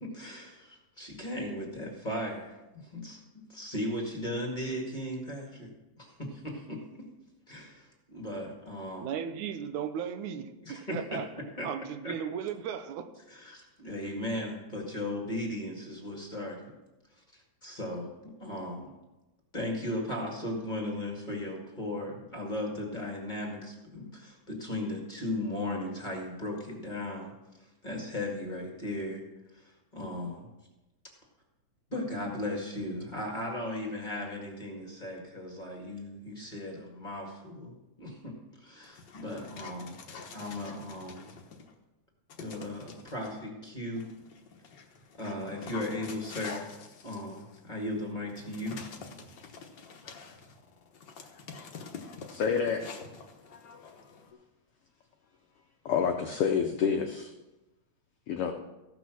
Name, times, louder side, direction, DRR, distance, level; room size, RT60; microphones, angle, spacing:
voice 1, 0.0-2.6 2.8-3.2 3.5-5.7 6.0-6.8 7.5-9.1 10.6-11.2 11.6-11.7 12.0-12.1 13.3-16.7 17.3-18.9 19.5-27.3 27.8-29.2 29.5-30.5 31.9-40.0 40.3-41.3 42.4-44.1 45.2-46.7 47.0-48.8, left 1 dB, 20° left, 1.6 m, -37 dB
voice 2, 9.0-11.3 11.6-13.1, right 8 dB, 80° right, 2.2 m, -36 dB
Dog, 38.8-41.7 42.3-43.3 43.9-54.3, left 5 dB, 55° left, 1.2 m, -47 dB
voice 3, 52.3-52.9 53.5-53.8 55.8-57.3 58.3-58.5, left 6 dB, 75° left, 1.3 m, -28 dB
16.0 x 6.0 x 6.2 m
omnidirectional pair, 3.4 m